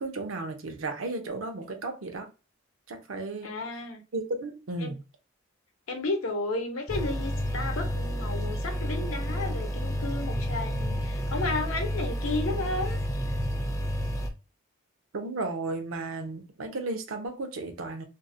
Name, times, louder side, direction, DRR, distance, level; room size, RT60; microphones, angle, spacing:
voice 1, 0.0-2.3 2.9-3.5 4.1-5.0 15.1-18.0, right 2 dB, 70° right, 0.6 m, -34 dB
voice 2, 3.4-4.0 4.8-4.9 5.9-13.0, left 2 dB, 80° left, 0.7 m, -33 dB
sound 1, 6.9-14.3, equal, 15° left, 0.3 m, -30 dB
2.6 x 2.1 x 2.5 m
head